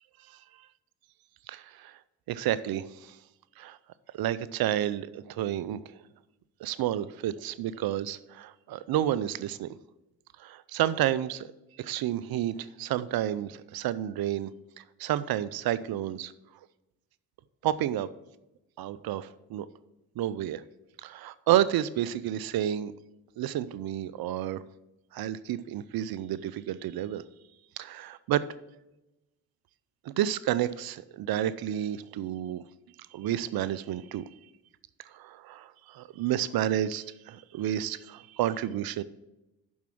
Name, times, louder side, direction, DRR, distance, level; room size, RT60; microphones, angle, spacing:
voice 1, 1.5-2.0 2.3-3.2 3.6-3.8 4.1-5.8 6.6-9.7 10.4-11.5 11.8-14.5 14.8-16.3 17.6-18.1 18.8-19.7 20.2-20.6 21.0-22.9 23.4-24.6 25.1-27.2 27.8-28.4 30.1-32.6 33.1-34.2 35.1-39.0, right 12 dB, 65° right, 16 dB, 0.6 m, -30 dB
7.3 x 6.1 x 5.9 m, 0.96 s
supercardioid pair, 50°, 38 cm